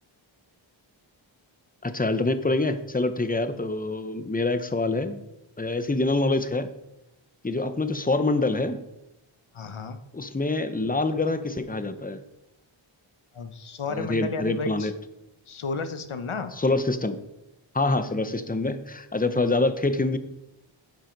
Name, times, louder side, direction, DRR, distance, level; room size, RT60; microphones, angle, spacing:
voice 1, 1.8-5.2 5.6-6.7 7.4-8.9 10.1-12.2 13.9-14.9 16.6-17.2 17.7-20.2, left 2 dB, 20° left, 10 dB, 0.8 m, -25 dB
voice 2, 9.5-10.0 13.3-14.9 15.5-16.5, left 4 dB, 80° left, 9 dB, 1.0 m, -33 dB
10.5 x 7.6 x 5.2 m, 0.92 s
wide cardioid pair, 80°, 48 cm